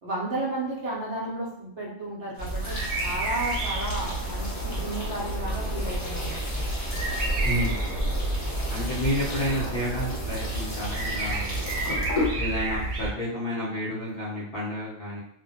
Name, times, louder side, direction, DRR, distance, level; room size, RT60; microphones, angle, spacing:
voice 1, 0.0-6.6, right 1 dB, 60° right, -5 dB, 0.9 m, -33 dB
sound 1, 2.4-12.3, left 1 dB, 40° left, 0.8 m, -35 dB
sound 2, 2.4-13.1, right 2 dB, 90° right, 0.4 m, -30 dB
sound 3, 7.2-8.0 9.1-9.8 10.9-11.6, equal, 10° left, 0.6 m, -49 dB
voice 2, 7.4-8.0 8.7-11.6 12.4-15.2, equal, 60° left, -7 dB, 0.6 m, -30 dB
2.4 x 2.1 x 2.6 m, 0.73 s
omnidirectional pair, 1.5 m